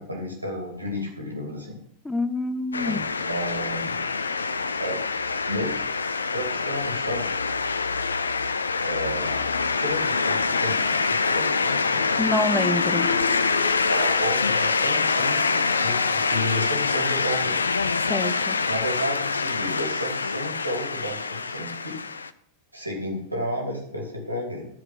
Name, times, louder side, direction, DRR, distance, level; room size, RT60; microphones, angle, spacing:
voice 1, 0.0-1.8 2.8-4.0 4.8-5.0 5.4-5.7 6.3-7.3 8.8-12.2 13.8-17.7 18.7-22.0 22.7-24.7, equal, 85° right, 0 dB, 2.8 m, -32 dB
voice 2, 2.0-3.0 12.2-13.1 18.1-18.6, left 2 dB, 10° left, 13 dB, 0.7 m, -26 dB
sound 1, 2.7-22.3, left 4 dB, 75° left, 0.5 m, -25 dB
sound 2, 12.4-17.2, left 7 dB, 50° left, 1.0 m, -37 dB
12.5 x 5.0 x 6.0 m, 0.69 s
figure-of-eight pair, 90°, 0 cm